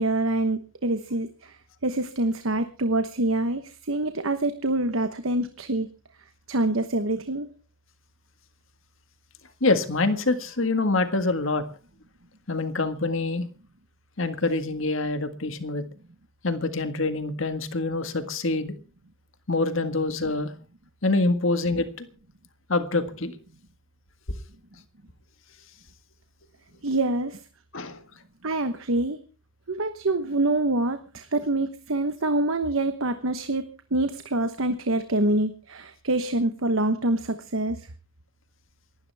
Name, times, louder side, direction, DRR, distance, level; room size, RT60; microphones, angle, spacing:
voice 1, 0.0-5.9 6.5-7.5 26.8-27.4 28.4-29.2 29.7-33.6 33.9-37.9, right 2 dB, 80° right, 1.1 m, -26 dB
voice 2, 9.6-11.6 12.5-13.5 14.2-15.8 16.4-18.7 19.5-20.5 21.0-22.1 22.7-23.3 27.7-28.0, left 2 dB, 75° left, 1.7 m, -25 dB
28.5 x 12.0 x 3.5 m
head